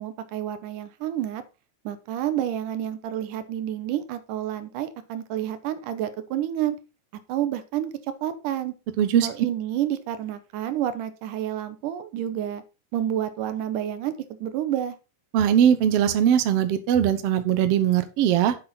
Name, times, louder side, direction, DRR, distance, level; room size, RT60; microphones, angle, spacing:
voice 1, 0.0-1.4 1.9-6.8 7.3-7.9 8.2-8.8 9.2-12.6 12.9-14.2 14.4-14.9, right 11 dB, 85° right, 11 dB, 2.5 m, -29 dB
voice 2, 9.0-9.3 15.3-18.6, right 9 dB, 65° right, 10 dB, 1.7 m, -20 dB
7.9 x 7.5 x 4.2 m, 0.30 s
omnidirectional pair, 3.6 m